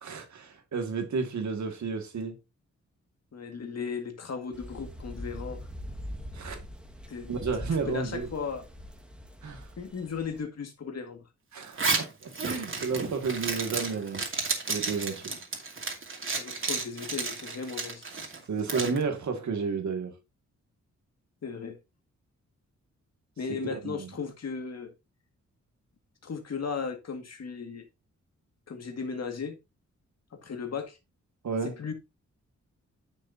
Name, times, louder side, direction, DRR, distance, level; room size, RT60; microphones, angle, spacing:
voice 1, 0.0-2.4 6.3-6.6 7.3-8.3 9.4-9.7 11.5-14.3 14.7-15.3 18.5-20.2 23.7-24.1 31.4-31.8, right 5 dB, 75° right, 2.1 m, -32 dB
voice 2, 3.3-5.7 7.1-7.3 7.9-8.7 9.8-11.2 16.3-18.1 21.4-21.8 23.4-24.9 26.2-27.9 28.7-29.6 30.3-31.0 31.8-31.9, left 5 dB, 60° left, 2.0 m, -36 dB
sound 1, 4.5-10.4, equal, 5° right, 1.8 m, -42 dB
Zipper (clothing), 11.6-19.0, right 4 dB, 45° right, 2.5 m, -32 dB
10.0 x 6.6 x 2.8 m
cardioid pair, 80°, 29 cm